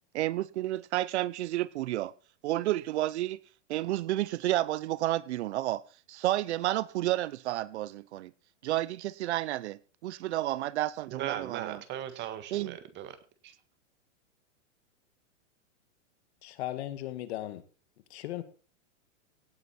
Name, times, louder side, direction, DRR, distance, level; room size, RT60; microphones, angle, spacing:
voice 1, 0.1-2.1 2.4-3.4 3.7-5.8 6.1-8.3 8.6-11.8 12.5-12.8, right 15 dB, 60° right, 0.8 m, -31 dB
voice 2, 11.1-13.2 13.4-13.5, right 11 dB, 30° right, 1.7 m, -38 dB
voice 3, 16.4-17.6 18.1-18.4, left 14 dB, 55° left, 1.9 m, -36 dB
17.5 x 8.2 x 4.3 m
hypercardioid pair, 140°, 37 cm